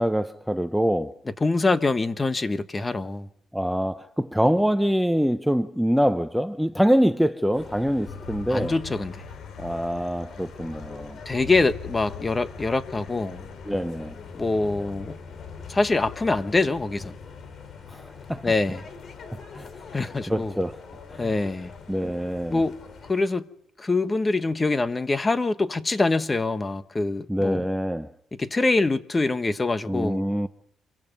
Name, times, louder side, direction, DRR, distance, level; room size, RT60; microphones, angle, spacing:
voice 1, 0.0-1.2 3.5-8.7 9.6-11.2 13.6-14.2 17.9-18.5 19.5-20.8 21.1-21.3 21.9-22.6 27.3-28.1 29.8-30.5, equal, ahead, 0.8 m, -25 dB
voice 2, 1.4-3.3 8.5-9.2 11.2-13.4 14.3-15.1 15.7-17.1 18.4-18.8 19.9-20.5 21.2-21.7 22.5-22.8 23.1-23.4 23.8-27.6 28.4-30.3, left 3 dB, 25° left, 1.5 m, -24 dB
sound 1, 7.5-23.1, left 5 dB, 55° left, 4.7 m, -43 dB
sound 2, 8.1-16.0, left 6 dB, 85° left, 5.6 m, -44 dB
26.5 x 23.5 x 5.4 m
cardioid pair, 90°, 0 cm